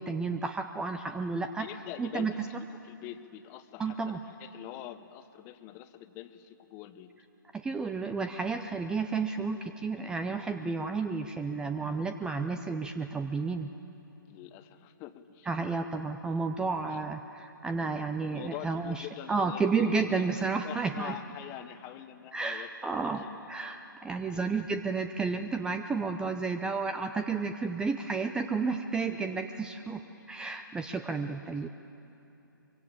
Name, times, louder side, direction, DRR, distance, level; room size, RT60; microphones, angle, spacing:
voice 1, 0.0-1.7 2.0-2.3 3.8-4.2 7.5-13.7 15.5-21.1 22.3-30.0 30.3-31.7, right 4 dB, 5° right, 8 dB, 0.5 m, -32 dB
voice 2, 1.6-7.1 14.3-15.5 16.9-17.0 18.3-22.7 23.0-23.8 24.3-24.5 29.1-29.4 30.0-30.3 31.4-31.5, left 13 dB, 25° left, 11 dB, 1.1 m, -45 dB
24.5 x 23.5 x 8.6 m, 3.0 s
figure-of-eight pair, 130°, 12 cm